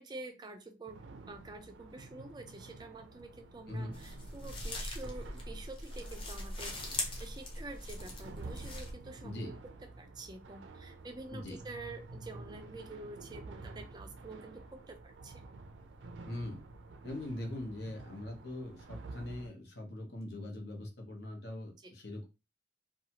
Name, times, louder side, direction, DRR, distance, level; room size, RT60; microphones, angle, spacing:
voice 1, 0.0-9.6 10.0-15.4 21.8-21.9, right 2 dB, 25° right, 5 dB, 0.4 m, -48 dB
sound 1, 0.9-19.5, right 3 dB, 90° right, 0.4 m, -50 dB
sound 2, 3.9-8.9, left 2 dB, 30° left, 0.6 m, -41 dB
voice 2, 9.2-9.5 11.3-11.6 16.3-16.6 17.0-22.3, left 1 dB, 65° left, 1 dB, 0.9 m, -41 dB
2.7 x 2.3 x 2.8 m, 0.28 s
head